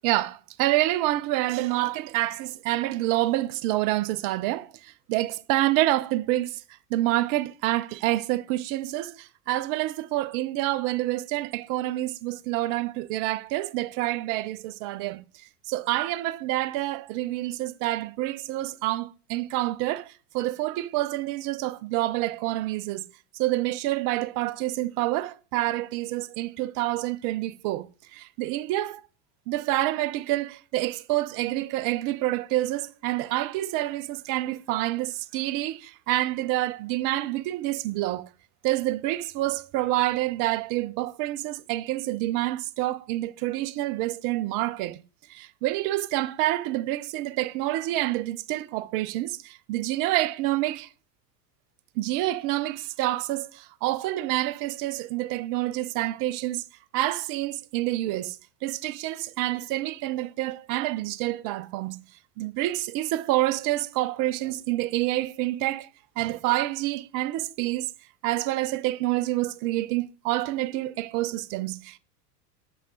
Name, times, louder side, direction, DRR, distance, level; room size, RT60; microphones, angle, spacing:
voice 1, 0.0-6.6 6.9-15.2 15.7-23.1 23.4-29.0 29.5-38.3 38.6-45.0 45.3-50.9 52.0-56.6 56.9-58.4 58.6-62.0 62.4-65.9 66.2-67.9 68.2-72.0, right 16 dB, 40° right, 0.6 m, -27 dB
6.6 x 6.4 x 3.8 m
hypercardioid pair, 90°, 49 cm